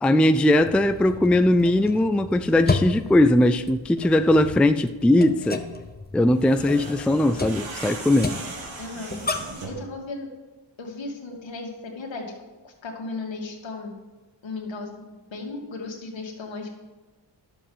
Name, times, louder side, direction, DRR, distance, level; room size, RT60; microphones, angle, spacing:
voice 1, 0.0-5.6 6.1-8.4, left 1 dB, 5° left, 10 dB, 0.3 m, -19 dB
sound 1, 0.6-9.7, left 3 dB, 20° left, 0.9 m, -33 dB
sound 2, 6.3-9.9, right 3 dB, 90° right, 2.0 m, -38 dB
voice 2, 8.8-9.2 9.7-10.3 10.8-13.9 14.4-16.7, left 3 dB, 75° left, 0 dB, 2.3 m, -36 dB
11.5 x 7.2 x 5.5 m, 1.2 s
cardioid pair, 85°, 45 cm